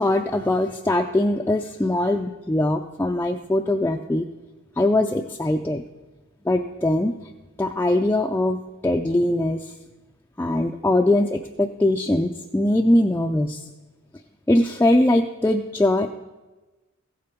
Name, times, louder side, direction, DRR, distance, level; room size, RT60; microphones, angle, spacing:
voice 1, 0.0-4.3 4.8-5.8 6.5-7.1 7.6-8.6 8.8-9.7 10.4-13.6 14.5-16.1, left 1 dB, 10° left, 3 dB, 0.3 m, -21 dB
14.5 x 8.5 x 4.5 m, 1.2 s
head